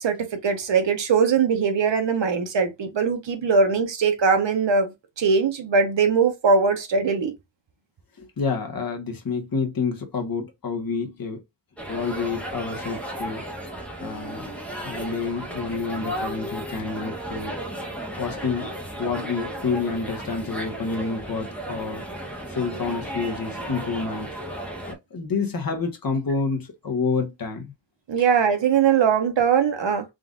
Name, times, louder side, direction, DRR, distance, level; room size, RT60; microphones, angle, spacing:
voice 1, 0.0-4.9 5.2-7.3 28.1-30.0, right 5 dB, 65° right, 1.0 m, -21 dB
voice 2, 8.2-11.4 11.9-13.4 14.0-14.5 14.8-17.5 18.2-22.0 22.5-24.3 24.9-27.7, left 4 dB, 45° left, 1.1 m, -28 dB
sound 1, 11.8-24.9, right 1 dB, 5° left, 1.0 m, -34 dB
3.8 x 2.5 x 3.7 m
wide cardioid pair, 165°, 47 cm